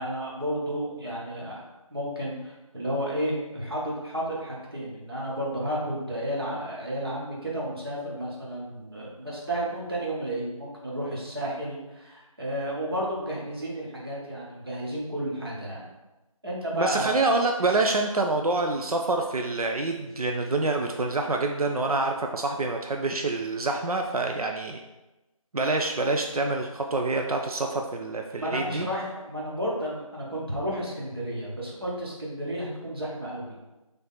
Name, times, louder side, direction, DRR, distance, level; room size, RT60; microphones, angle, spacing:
voice 1, 0.0-1.6 1.9-15.9 16.4-17.2 28.3-33.6, equal, 45° right, -4 dB, 1.1 m, -32 dB
voice 2, 16.7-24.8 25.5-28.9, right 3 dB, 90° right, 3 dB, 0.5 m, -26 dB
3.4 x 2.9 x 3.9 m, 1.0 s
figure-of-eight pair, 170°, 18 cm